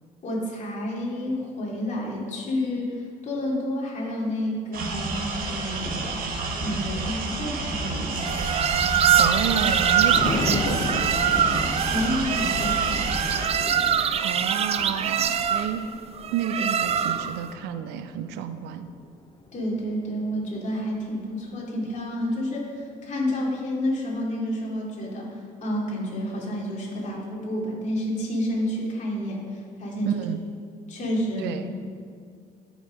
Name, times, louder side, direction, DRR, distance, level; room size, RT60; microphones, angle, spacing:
voice 1, 0.2-6.2 6.6-8.4 11.8-13.1 19.5-25.3 25.6-30.2 30.9-31.6, equal, 45° left, -4 dB, 2.8 m, -29 dB
sound 1, 4.7-13.5, right 3 dB, 60° right, 1.6 m, -30 dB
sound 2, 8.2-17.4, right 8 dB, 35° right, 0.4 m, -24 dB
Thunder, 9.2-20.5 20.9-21.3, left 4 dB, 25° left, 0.6 m, -35 dB
voice 2, 9.2-11.1 14.2-15.8 16.3-18.9 30.0-30.4 31.4-31.7, right 8 dB, 90° right, 10 dB, 0.6 m, -30 dB
11.5 x 6.1 x 5.2 m, 2.2 s
cardioid pair, 110°, 17 cm